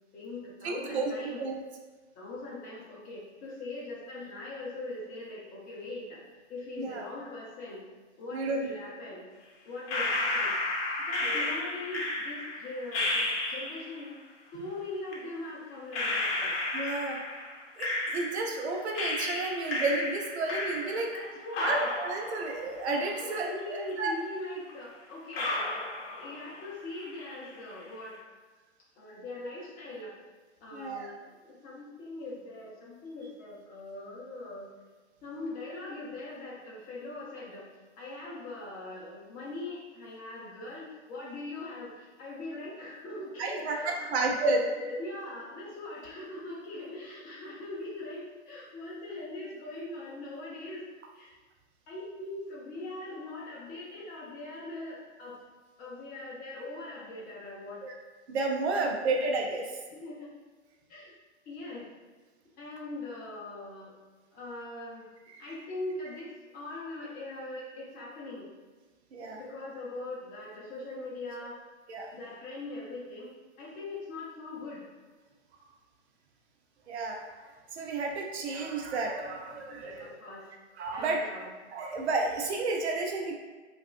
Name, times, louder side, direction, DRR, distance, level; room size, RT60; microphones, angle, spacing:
voice 1, 0.1-1.4 2.2-6.2 6.5-7.8 8.2-9.2 9.6-10.6 11.0-14.2 14.5-16.6 17.3-17.5 18.7-18.8 21.1-21.9 23.2-25.8 26.2-28.2 29.0-30.2 30.6-34.7 35.2-37.7 38.0-50.8 51.1-51.3 51.9-55.4 55.8-57.8 59.9-60.3 60.9-61.1 61.5-61.9 62.6-63.9 64.3-65.1 65.4-68.5 69.2-71.6 72.1-73.3 73.6-74.9 79.8-80.5 80.9-81.5, left 2 dB, 25° left, -5 dB, 0.7 m, -41 dB
voice 2, 0.6-1.1 1.4-1.6 6.8-7.0 8.3-8.7 11.2-11.4 16.7-17.2 17.8-21.1 21.6-24.1 30.7-31.1 43.4-44.6 57.8-58.0 58.3-59.7 65.3-65.4 69.1-69.4 71.9-72.1 76.9-77.2 77.7-80.1 80.8-81.2 81.7-83.3, right 3 dB, 65° right, 1 dB, 0.6 m, -31 dB
sound 1, 9.9-14.0 15.1-15.2 15.9-18.6 18.9-21.2 21.5-23.6 23.9-24.0 24.7-24.8 25.3-26.7 26.9-27.5, left 2 dB, 55° left, 0.8 m, -32 dB
3.4 x 2.5 x 2.4 m, 1.4 s
hypercardioid pair, 120°, 36 cm